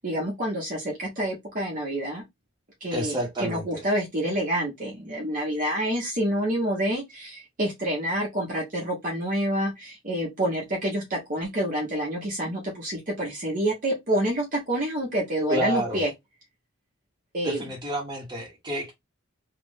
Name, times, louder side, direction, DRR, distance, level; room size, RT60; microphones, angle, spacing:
voice 1, 0.0-2.2 2.8-16.1 17.3-17.7, right 1 dB, 40° right, 1.2 m, -28 dB
voice 2, 2.9-3.8 15.5-16.0 17.4-18.9, right 1 dB, 20° right, 1.4 m, -30 dB
3.1 x 2.5 x 3.9 m
head